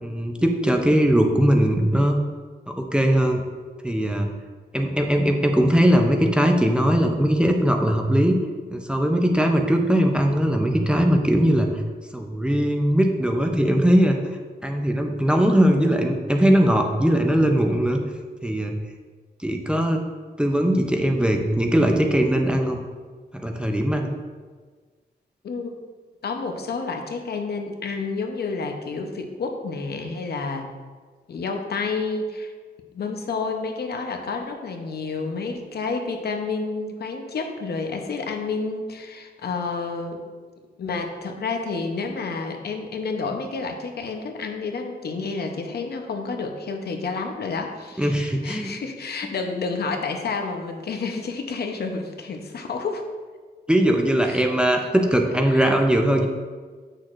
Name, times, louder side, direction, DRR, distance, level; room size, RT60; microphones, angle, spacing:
voice 1, 0.0-2.2 2.7-3.4 3.8-4.3 4.7-8.4 8.7-11.8 12.1-14.2 14.6-18.0 18.4-18.7 19.4-20.0 20.4-22.8 23.3-24.1 48.0-48.7 53.7-56.3, equal, 5° right, 3 dB, 0.5 m, -20 dB
voice 2, 26.2-30.7 31.3-32.5 32.9-40.2 40.8-53.0 54.2-54.5 54.8-54.9 55.5-55.7, left 4 dB, 70° left, 4 dB, 0.8 m, -30 dB
7.8 x 6.4 x 2.5 m, 1.5 s
wide cardioid pair, 135°, 17 cm